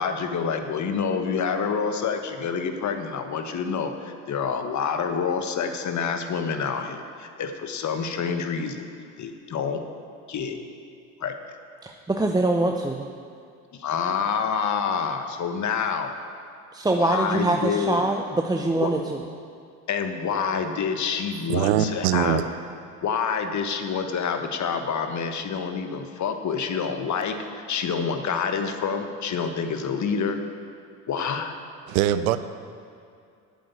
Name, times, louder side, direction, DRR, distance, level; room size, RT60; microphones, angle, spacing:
voice 1, 0.0-8.9 9.2-9.8 10.3-10.6 11.2-11.3 13.7-16.1 17.0-18.0 18.8-18.9 19.9-22.4 23.0-30.4 31.1-31.5, left 6 dB, 40° left, 6 dB, 1.3 m, -27 dB
voice 2, 11.8-13.1 16.7-19.2, right 2 dB, 10° right, 3 dB, 0.6 m, -24 dB
voice 3, 21.5-22.4 31.9-32.4, right 12 dB, 80° right, 13 dB, 0.7 m, -22 dB
8.5 x 7.7 x 8.4 m, 2.4 s
hypercardioid pair, 70°, 42 cm